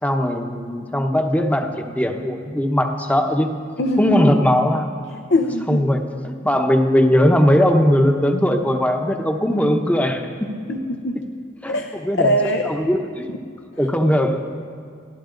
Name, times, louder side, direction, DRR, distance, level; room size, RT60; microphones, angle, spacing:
voice 1, 0.0-3.5 4.0-4.9 5.7-10.5 11.6-12.3 12.7-13.3 13.8-14.4, equal, 10° left, 4 dB, 1.0 m, -19 dB
voice 2, 3.8-4.3 5.3-5.8 10.7-11.2 11.7-11.9 12.2-12.7, left 1 dB, 65° left, 5 dB, 0.8 m, -21 dB
30.0 x 12.0 x 3.9 m, 2.2 s
head